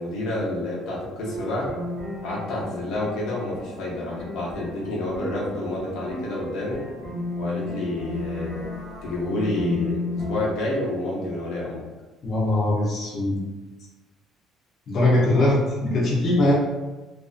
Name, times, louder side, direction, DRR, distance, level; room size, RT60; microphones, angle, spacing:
voice 1, 0.0-1.7 2.2-6.9 7.4-8.7 9.0-11.8, left 1 dB, 80° left, -4 dB, 0.7 m, -29 dB
sound 1, 1.2-10.5, left 2 dB, 5° right, 0.6 m, -34 dB
voice 2, 12.2-13.4 14.9-16.5, left 1 dB, 40° left, -5 dB, 0.6 m, -21 dB
2.4 x 2.3 x 2.3 m, 1.2 s
cardioid pair, 145°, 0 cm